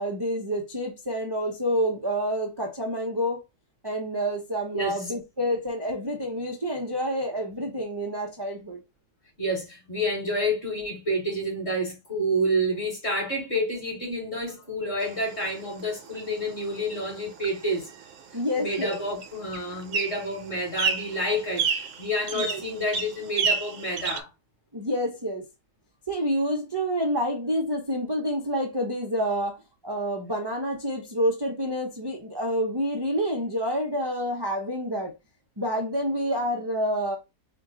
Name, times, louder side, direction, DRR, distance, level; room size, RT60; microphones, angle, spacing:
voice 1, 0.0-3.4 3.8-8.8 18.3-19.0 22.3-22.6 24.7-25.4 26.1-35.1 35.6-37.2, equal, 30° right, 0.4 m, -28 dB
voice 2, 4.7-5.0 9.4-17.9 18.6-24.3, equal, 40° left, 2.8 m, -29 dB
sound 1, 15.0-24.2, right 6 dB, 75° right, 1.1 m, -32 dB
4.4 x 2.3 x 3.7 m
omnidirectional pair, 1.7 m